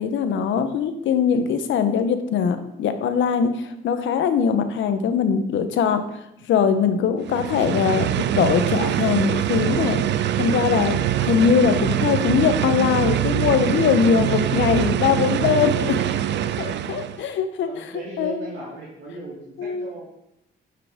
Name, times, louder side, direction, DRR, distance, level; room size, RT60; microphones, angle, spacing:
voice 1, 0.0-6.0 6.4-10.0 10.4-16.0 16.6-17.9 18.2-18.5 19.6-19.9, left 7 dB, 75° left, 9 dB, 0.8 m, -21 dB
sound 1, 7.2-17.2, right 11 dB, 65° right, 0.4 m, -23 dB
voice 2, 17.6-20.0, right 2 dB, 80° right, -6 dB, 2.0 m, -37 dB
9.4 x 4.8 x 3.5 m, 0.84 s
cardioid pair, 90°, 20 cm